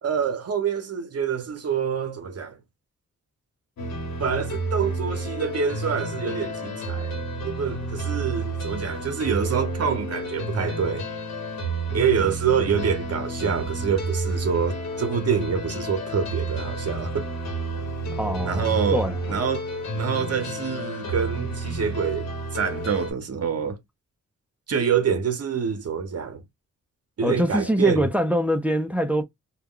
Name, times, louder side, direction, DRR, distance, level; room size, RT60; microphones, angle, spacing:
voice 1, 0.0-2.6 4.2-11.1 11.9-17.3 18.4-19.7 19.9-23.8 24.7-26.4 27.2-28.1, right 6 dB, 55° right, 0.7 m, -26 dB
sound 1, 3.8-23.1, right 2 dB, 60° left, 1.1 m, -30 dB
voice 2, 18.2-19.4 27.2-29.2, equal, 5° right, 0.4 m, -24 dB
2.3 x 2.1 x 3.6 m
wide cardioid pair, 115°, 31 cm